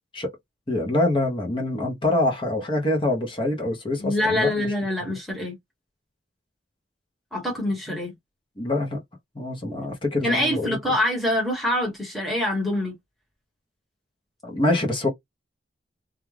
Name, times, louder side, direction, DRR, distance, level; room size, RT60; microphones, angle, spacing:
voice 1, 0.7-4.7 8.6-9.0 9.3-10.8 14.4-15.1, left 1 dB, 25° left, 0.7 m, -25 dB
voice 2, 4.0-5.6 7.3-8.1 10.2-13.0, left 1 dB, ahead, 1.1 m, -25 dB
2.4 x 2.2 x 3.1 m
head